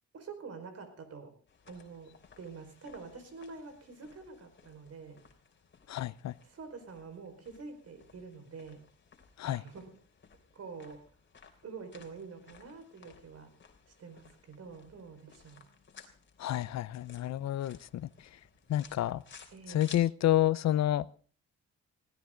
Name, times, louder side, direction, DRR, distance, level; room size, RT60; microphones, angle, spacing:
voice 1, 0.1-1.4 1.6-5.2 6.4-8.9 9.4-9.9 10.5-11.1 11.6-13.5 14.0-15.7 19.5-20.0, right 4 dB, 55° right, 5.1 m, -47 dB
sound 1, 1.5-20.0, left 6 dB, 40° left, 3.3 m, -58 dB
voice 2, 5.9-6.3 9.4-9.6 16.4-18.1 18.7-19.2 19.7-21.1, left 13 dB, 60° left, 0.7 m, -29 dB
20.0 x 17.0 x 3.9 m
cardioid pair, 90°, 30 cm